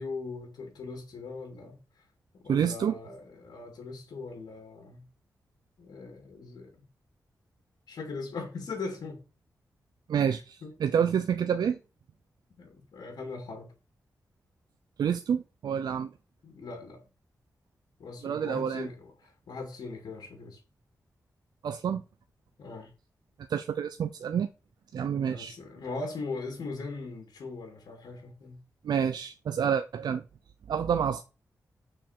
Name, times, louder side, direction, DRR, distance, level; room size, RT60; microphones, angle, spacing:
voice 1, 0.0-2.0 2.3-5.1 5.8-6.7 7.9-9.2 10.6-10.7 12.6-13.7 16.4-17.0 18.0-20.6 22.6-22.9 25.2-28.6, left 3 dB, 90° left, 2.3 m, -40 dB
voice 2, 2.5-2.9 10.1-11.8 15.0-16.1 18.2-18.9 21.6-22.0 23.5-24.5 24.9-25.6 28.8-30.2 30.7-31.2, right 8 dB, 85° right, 0.5 m, -28 dB
6.5 x 4.4 x 5.9 m
wide cardioid pair, 115°, 7 cm